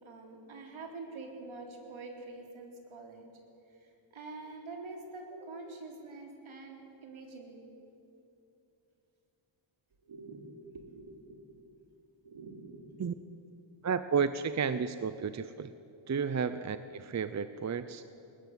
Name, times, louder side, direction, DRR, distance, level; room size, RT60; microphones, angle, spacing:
voice 1, 0.0-3.3 3.8-7.7 10.0-10.4 10.7-11.4 12.2-13.0, right 3 dB, 70° right, 2 dB, 4.1 m, -46 dB
voice 2, 13.8-15.7 16.1-18.0, right 6 dB, 35° right, 12 dB, 0.7 m, -32 dB
21.0 x 19.5 x 9.5 m, 2.7 s
wide cardioid pair, 120°, 49 cm